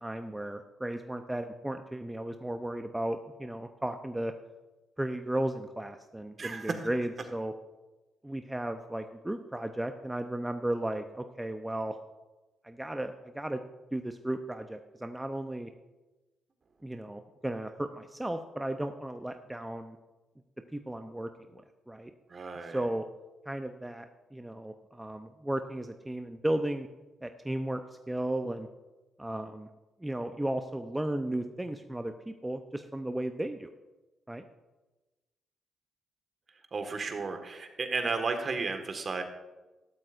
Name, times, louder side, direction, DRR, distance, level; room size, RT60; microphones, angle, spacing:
voice 1, 0.0-4.3 5.0-7.5 8.2-12.0 12.6-13.6 13.9-15.7 16.8-20.0 20.7-22.1 22.7-23.1 23.5-26.9 27.2-27.8 28.1-28.7 29.2-29.7 30.0-33.7 34.3-34.4, right 1 dB, 10° right, 7 dB, 0.7 m, -35 dB
voice 2, 6.4-6.9 22.3-22.9 36.7-39.2, right 4 dB, 45° right, 6 dB, 1.6 m, -33 dB
13.5 x 12.0 x 2.6 m, 1.1 s
hypercardioid pair, 45°, 0 cm